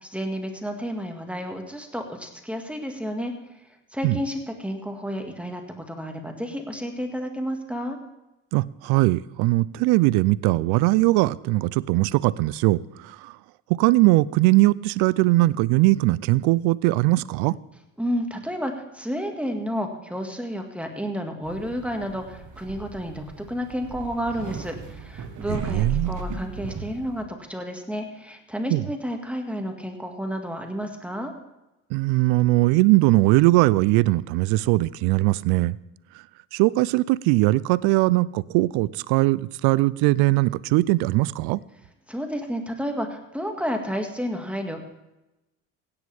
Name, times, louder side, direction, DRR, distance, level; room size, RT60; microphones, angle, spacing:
voice 1, 0.0-3.3 3.9-8.0 18.0-31.3 42.1-44.9, equal, 5° right, 2.0 m, -31 dB
voice 2, 8.5-13.4 13.7-17.6 25.5-26.2 28.7-28.8 31.9-35.8 36.5-41.6, right 19 dB, 65° right, 0.5 m, -20 dB
sound 1, 21.4-27.2, right 5 dB, 45° right, 1.4 m, -35 dB
16.5 x 9.8 x 3.6 m
hypercardioid pair, 60°, 41 cm